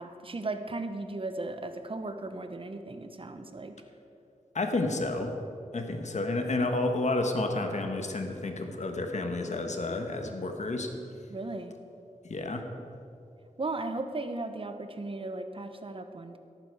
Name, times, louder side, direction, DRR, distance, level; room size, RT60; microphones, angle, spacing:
voice 1, 0.0-3.7 11.3-11.7 13.6-16.4, right 2 dB, 45° right, 8 dB, 1.0 m, -36 dB
voice 2, 4.5-5.3 5.7-10.9 12.2-12.6, left 2 dB, 60° left, 4 dB, 1.4 m, -30 dB
14.0 x 11.5 x 4.8 m, 2.6 s
wide cardioid pair, 60°, 13 cm